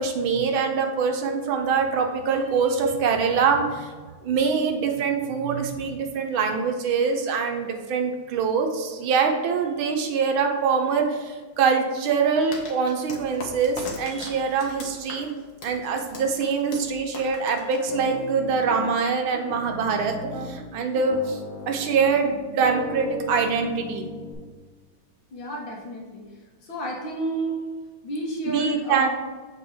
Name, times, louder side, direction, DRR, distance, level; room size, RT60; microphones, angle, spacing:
voice 1, 0.0-3.9 4.2-15.3 15.6-20.1 20.4-21.4 21.7-24.1 28.5-29.1, right 5 dB, 75° right, 4 dB, 1.6 m, -24 dB
sound 1, 12.5-18.3, left 3 dB, 75° left, 2.0 m, -40 dB
Piano, 17.9-18.9 19.3-20.6 20.9-24.3, left 1 dB, 15° left, 1.9 m, -36 dB
voice 2, 25.3-26.2 26.6-27.6 28.0-29.1, right 1 dB, 60° left, -3 dB, 2.1 m, -31 dB
7.2 x 4.4 x 4.9 m, 1.4 s
omnidirectional pair, 2.4 m